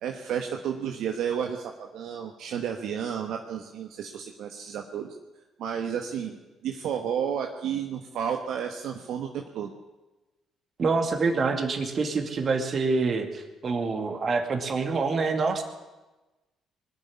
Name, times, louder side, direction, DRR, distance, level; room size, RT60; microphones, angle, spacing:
voice 1, 0.0-5.1 5.6-9.7, right 8 dB, 75° right, 3 dB, 1.2 m, -32 dB
voice 2, 10.8-15.6, right 4 dB, 50° right, 5 dB, 2.2 m, -26 dB
20.5 x 7.0 x 9.9 m, 1.1 s
supercardioid pair, 60°, 0 cm